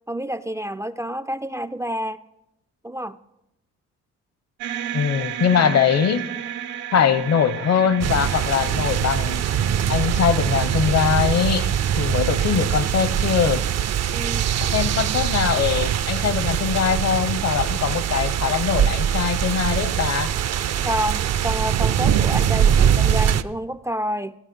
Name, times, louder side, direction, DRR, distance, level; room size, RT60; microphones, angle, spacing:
voice 1, 0.1-2.2 2.8-3.2 14.1-14.5 20.8-24.3, equal, 10° right, 0.4 m, -28 dB
sound 1, 4.6-14.8, right 10 dB, 90° right, 1.1 m, -35 dB
voice 2, 4.9-6.2 6.9-9.4 9.9-11.7 12.0-13.6 14.6-20.3, left 7 dB, 60° left, 0.9 m, -22 dB
sound 2, 8.0-23.4, right 9 dB, 60° right, 0.6 m, -22 dB
15.0 x 9.9 x 5.3 m
cardioid pair, 90°, 30 cm